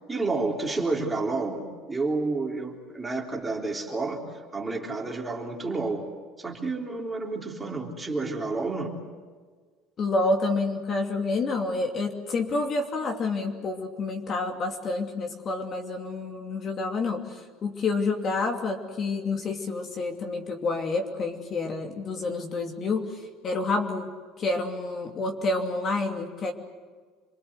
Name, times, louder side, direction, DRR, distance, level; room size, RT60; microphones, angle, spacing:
voice 1, 0.1-4.2 4.5-6.1 6.4-8.9, right 3 dB, 10° right, 0 dB, 3.6 m, -30 dB
voice 2, 10.0-23.1 23.4-24.1 24.4-26.5, left 3 dB, 35° left, 3 dB, 2.8 m, -28 dB
28.0 x 23.5 x 8.1 m, 1.5 s
cardioid pair, 150°, 0 cm